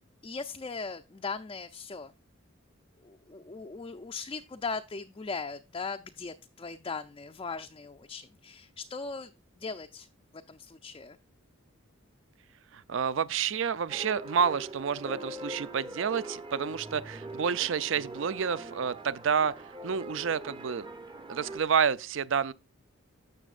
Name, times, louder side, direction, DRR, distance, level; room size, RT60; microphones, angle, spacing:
voice 1, 0.2-2.1 3.0-10.1 10.3-11.2, left 4 dB, 25° left, 0.4 m, -39 dB
voice 2, 12.7-19.5 19.8-20.9 21.3-22.5, right 7 dB, 65° right, 0.5 m, -29 dB
sound 1, 13.9-21.6, right 1 dB, 25° right, 0.8 m, -42 dB
14.5 x 6.2 x 2.4 m
head